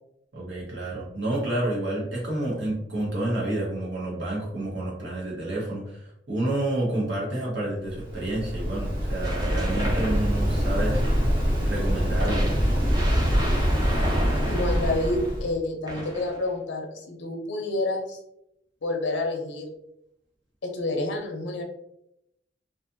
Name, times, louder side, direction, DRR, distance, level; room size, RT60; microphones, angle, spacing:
voice 1, 0.3-11.2 11.4-12.6, right 1 dB, 70° right, -5 dB, 1.0 m, -29 dB
Waves surf, 7.8-15.5, equal, 50° right, 1.1 m, -25 dB
sound 1, 9.2-11.5 12.2-15.3 15.9-16.5, equal, 20° right, 0.5 m, -34 dB
voice 2, 14.5-18.2 18.8-19.7 20.6-21.6, left 2 dB, 70° left, 2 dB, 0.5 m, -28 dB
2.6 x 2.5 x 2.5 m, 0.80 s
head